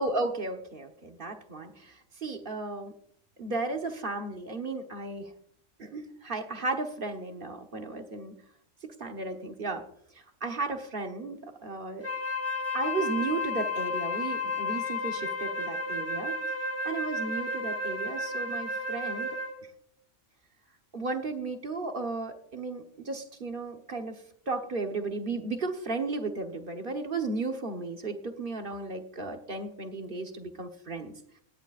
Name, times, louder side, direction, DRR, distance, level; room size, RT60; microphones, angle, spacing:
voice 1, 0.0-2.9 3.4-5.3 5.8-8.3 8.8-9.8 10.1-12.1 12.7-16.4 16.8-19.4 20.9-31.1, right 3 dB, 45° right, 5 dB, 1.3 m, -34 dB
Wind instrument woodwind instrument, 12.0-19.6, left 2 dB, 15° left, 0.9 m, -32 dB
17.0 x 10.0 x 2.5 m, 0.66 s
omnidirectional pair, 1.3 m